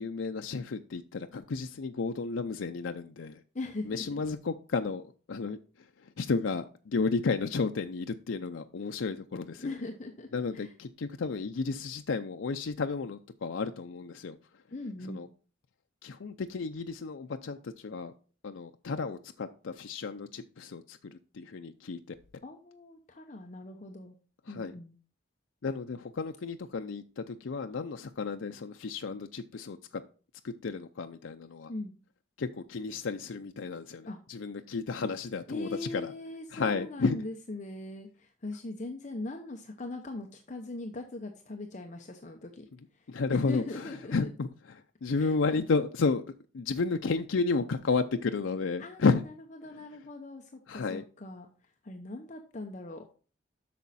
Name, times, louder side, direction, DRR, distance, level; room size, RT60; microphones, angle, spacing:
voice 1, 0.0-3.4 3.9-5.6 6.2-9.7 10.3-14.4 15.0-15.3 16.0-18.1 18.4-22.0 24.5-24.7 25.6-30.0 30.4-31.7 32.4-36.1 36.5-37.2 43.1-46.2 46.5-49.2 50.7-51.0, left 4 dB, 85° left, 6 dB, 0.5 m, -32 dB
voice 2, 3.5-4.2 9.6-10.7 14.7-15.2 22.4-24.2 24.5-24.9 31.7-32.0 34.0-34.2 35.5-42.7 42.9-44.3 45.2-45.6 48.8-49.1 49.6-51.5 51.8-53.1, left 2 dB, 40° left, 4 dB, 0.8 m, -40 dB
8.5 x 6.2 x 4.1 m, 0.38 s
head